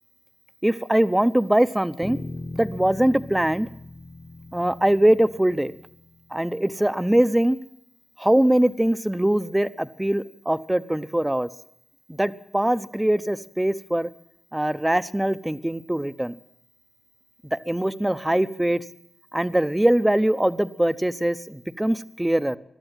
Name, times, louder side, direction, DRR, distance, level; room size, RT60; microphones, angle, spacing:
voice 1, 0.6-2.2 2.5-3.7 4.5-5.7 6.3-7.6 8.2-11.5 12.1-14.1 14.5-16.3 17.5-18.8 19.3-22.6, right 1 dB, 10° right, 14 dB, 0.8 m, -22 dB
Bass guitar, 2.0-6.5, left 2 dB, 25° left, 1.1 m, -39 dB
22.0 x 13.0 x 9.1 m, 0.77 s
wide cardioid pair, 120°, 0 cm